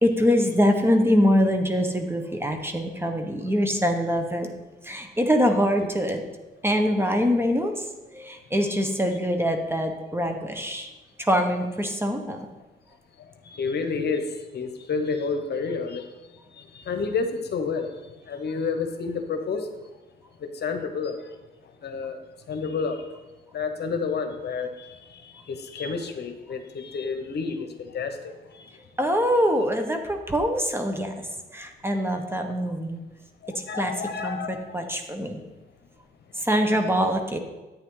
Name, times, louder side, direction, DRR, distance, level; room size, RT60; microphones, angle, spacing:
voice 1, 0.0-4.5 4.8-6.2 6.6-10.9 11.2-12.5 29.0-33.0 33.5-35.4 36.3-37.4, equal, 10° right, 5 dB, 1.2 m, -24 dB
voice 2, 13.2-16.1 16.5-19.7 20.4-21.3 21.8-22.2 22.5-23.1 23.5-28.8 32.3-32.5 33.7-34.8, left 4 dB, 55° left, 6 dB, 1.1 m, -30 dB
10.5 x 8.7 x 3.9 m, 1.1 s
cardioid pair, 90°, 20 cm